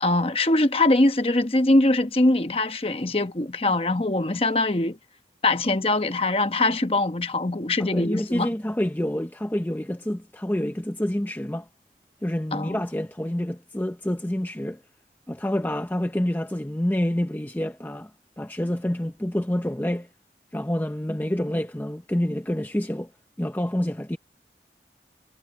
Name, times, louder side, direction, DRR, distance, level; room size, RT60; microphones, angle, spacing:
voice 1, 0.0-5.0 5.4-8.5 12.5-12.8, left 2 dB, 35° left, 1.0 m, -22 dB
voice 2, 7.8-11.7 12.2-14.8 15.3-18.1 18.4-20.1 20.5-23.1 23.4-24.2, left 1 dB, 10° left, 0.6 m, -27 dB
head